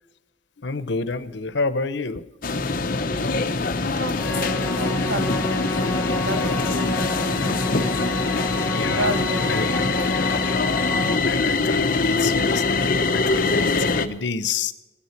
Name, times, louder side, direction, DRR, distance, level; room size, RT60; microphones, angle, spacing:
voice 1, 0.6-2.2 3.2-3.3 3.7-3.9 8.6-9.1 9.5-9.7 11.3-14.7, left 4 dB, 80° left, 14 dB, 0.9 m, -29 dB
sound 1, 2.4-14.1, left 3 dB, 50° left, 0.9 m, -23 dB
voice 2, 3.1-3.7 4.0-7.6 8.9-10.1, right 1 dB, 85° right, 8 dB, 1.6 m, -33 dB
sound 2, 4.1-11.2, left 2 dB, 15° left, 2.0 m, -29 dB
17.0 x 11.5 x 5.8 m, 1.0 s
head